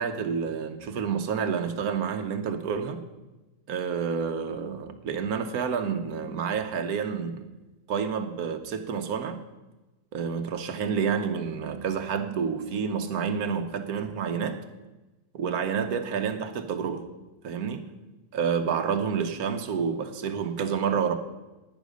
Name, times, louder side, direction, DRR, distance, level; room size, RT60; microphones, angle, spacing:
voice 1, 0.0-3.0 3.7-7.5 7.9-9.4 10.1-14.6 15.3-17.0 17.4-17.9 18.3-21.1, right 6 dB, 85° right, 8 dB, 1.4 m, -29 dB
11.5 x 9.6 x 5.2 m, 1.1 s
omnidirectional pair, 1.5 m